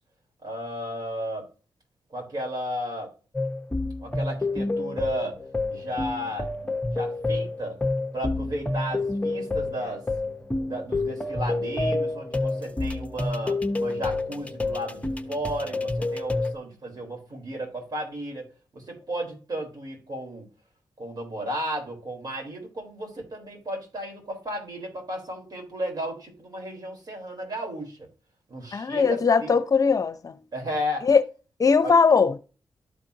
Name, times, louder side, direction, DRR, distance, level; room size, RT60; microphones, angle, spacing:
voice 1, 0.4-1.5 2.1-3.1 4.0-5.4 5.7-6.5 6.9-7.8 8.1-10.1 10.6-18.5 18.7-20.5 21.0-28.1 28.5-29.6 30.5-31.1 31.8-32.0, equal, 55° right, 4.0 m, -34 dB
sound 1, 3.3-16.5, left 2 dB, 15° left, 0.8 m, -29 dB
voice 2, 28.7-30.4 31.0-31.2 31.6-32.4, left 5 dB, 45° left, 0.7 m, -20 dB
12.5 x 4.4 x 2.7 m
cardioid pair, 90°, 8 cm